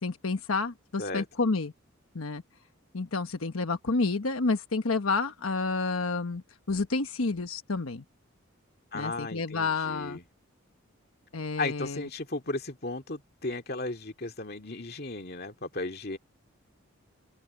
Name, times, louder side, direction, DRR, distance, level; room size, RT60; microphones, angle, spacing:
voice 1, 0.0-1.7 2.1-2.4 2.9-8.0 8.9-10.2 11.3-12.1, left 3 dB, 85° left, 1.2 m, -30 dB
voice 2, 8.9-10.2 11.6-16.2, left 2 dB, 45° left, 2.3 m, -35 dB
open air
head